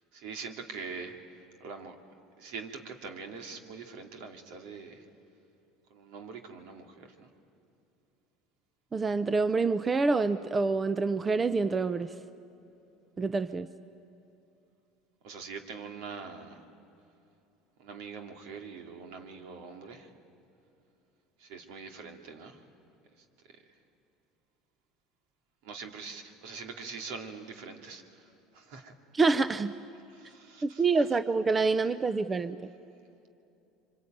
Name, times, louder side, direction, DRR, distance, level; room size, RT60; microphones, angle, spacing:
voice 1, 0.1-1.2 1.6-2.0 2.4-5.0 5.9-7.3 15.2-16.6 17.8-20.1 21.4-22.6 25.6-28.0 28.5-28.9 30.1-30.8, right 5 dB, 75° right, 4 dB, 2.7 m, -43 dB
voice 2, 8.9-12.1 13.2-13.7 29.1-29.7 30.6-32.7, right 4 dB, 25° right, 13 dB, 0.7 m, -27 dB
25.5 x 25.5 x 9.2 m, 2.8 s
supercardioid pair, 100°, 0 cm